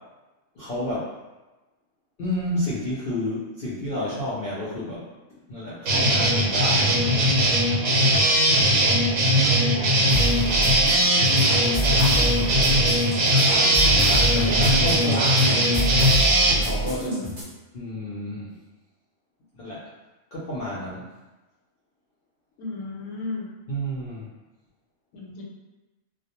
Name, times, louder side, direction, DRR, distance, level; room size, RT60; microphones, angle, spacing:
voice 1, 0.6-1.1 2.2-5.1 5.5-7.3 9.3-10.0 11.7-12.6 13.1-16.1 16.5-17.1 17.7-18.5 19.6-19.8 20.3-21.1 23.7-24.3, equal, 60° left, -9 dB, 0.6 m, -31 dB
sound 1, 5.8-16.5, equal, 80° right, 1.0 m, -19 dB
voice 2, 9.5-10.2 11.0-11.1 17.0-17.3 22.6-23.4 25.1-25.4, left 2 dB, 90° left, -2 dB, 1.0 m, -35 dB
sound 2, 10.1-17.4, right 1 dB, 30° right, 0.4 m, -28 dB
2.2 x 2.1 x 2.8 m, 1.1 s
omnidirectional pair, 1.4 m